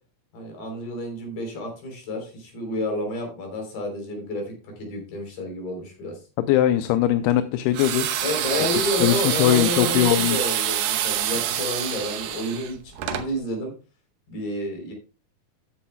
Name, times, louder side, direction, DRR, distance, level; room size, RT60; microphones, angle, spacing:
voice 1, 0.3-6.2 8.2-13.7 14.3-14.9, left 1 dB, 60° left, 2 dB, 5.4 m, -30 dB
voice 2, 6.4-8.1 9.0-10.5, left 12 dB, 85° left, 10 dB, 2.6 m, -21 dB
sound 1, 7.7-13.3, right 11 dB, 75° right, 2.6 m, -26 dB
14.5 x 9.9 x 2.3 m, 0.34 s
omnidirectional pair, 4.5 m